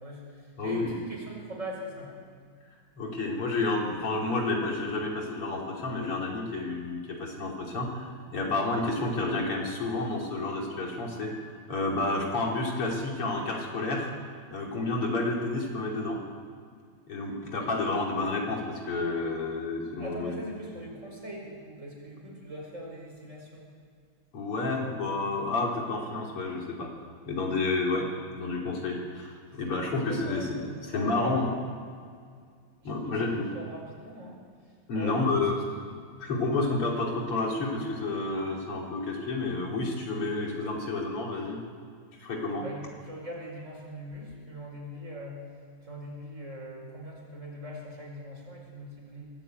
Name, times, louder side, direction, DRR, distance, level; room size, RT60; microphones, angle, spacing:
voice 1, 0.0-2.2 20.0-23.7 24.7-24.9 29.8-31.4 33.0-34.4 34.9-35.4 42.6-45.4 45.8-49.3, equal, 30° right, -2 dB, 5.8 m, -41 dB
voice 2, 0.6-0.9 3.0-14.1 14.5-16.2 17.1-20.4 24.3-26.9 27.3-31.5 32.8-33.5 34.9-35.5 36.2-41.6 42.2-42.6, left 3 dB, 80° left, -1 dB, 4.1 m, -30 dB
22.5 x 13.0 x 9.0 m, 2.1 s
omnidirectional pair, 2.4 m